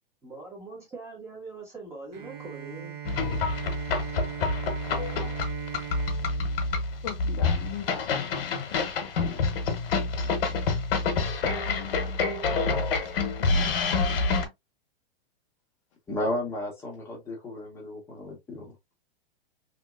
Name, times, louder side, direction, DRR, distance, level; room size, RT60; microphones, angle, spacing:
voice 1, 0.2-3.0, right 3 dB, 10° right, 1.2 m, -42 dB
Bowed string instrument, 2.1-7.8, right 10 dB, 45° right, 0.7 m, -39 dB
sound 1, 3.0-14.4, left 4 dB, 70° left, 1.0 m, -27 dB
voice 2, 7.0-9.3 11.7-12.7 13.2-14.3, left 9 dB, 35° left, 0.4 m, -41 dB
voice 3, 16.1-18.7, left 1 dB, 10° left, 0.9 m, -34 dB
2.9 x 2.8 x 2.4 m
supercardioid pair, 160°, 29 cm